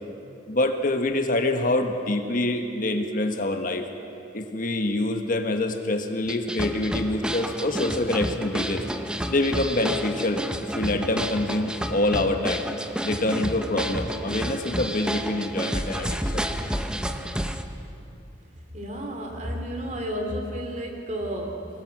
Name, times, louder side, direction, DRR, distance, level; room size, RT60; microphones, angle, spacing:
voice 1, 0.5-3.8 4.3-8.8 9.3-10.4 10.7-12.6 13.0-16.4, left 2 dB, 50° left, 5 dB, 1.4 m, -26 dB
sound 1, 6.3-17.6, equal, 5° right, 0.9 m, -30 dB
voice 2, 18.7-21.7, equal, 40° right, 2 dB, 3.1 m, -32 dB
25.0 x 20.5 x 6.1 m, 2.7 s
head